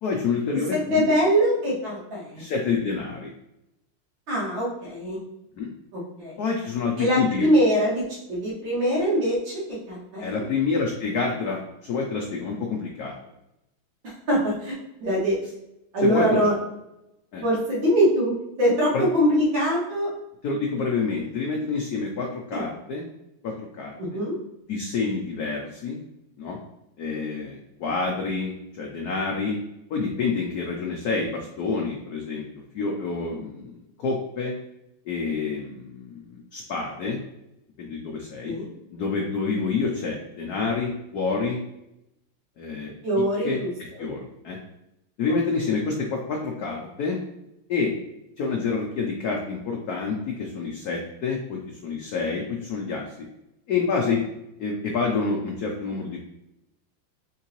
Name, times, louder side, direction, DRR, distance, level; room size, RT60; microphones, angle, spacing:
voice 1, 0.0-1.0 2.4-3.3 5.6-5.7 6.4-7.5 10.2-13.1 16.0-16.4 17.3-17.4 18.9-19.1 20.4-23.0 23.4-24.2 24.7-26.0 26.4-26.6 27.0-29.6 29.9-32.4 32.7-33.7 34.0-34.5 35.0-37.2 37.8-38.6 38.9-41.6 42.6-42.9 43.4-43.6 44.0-44.6 45.2-47.2 47.7-47.9 48.4-53.0 53.7-54.2 54.6-56.2, left 4 dB, 70° left, 0 dB, 0.9 m, -28 dB
voice 2, 0.7-2.4 4.3-5.2 5.9-6.4 7.0-10.4 14.0-14.7 15.0-15.4 15.9-16.5 17.4-20.1 22.5-22.6 24.0-24.3 38.4-38.7 43.0-43.7 44.0-44.1 45.3-45.4, equal, 65° right, -5 dB, 2.3 m, -23 dB
4.5 x 3.8 x 2.9 m, 0.87 s
omnidirectional pair, 2.2 m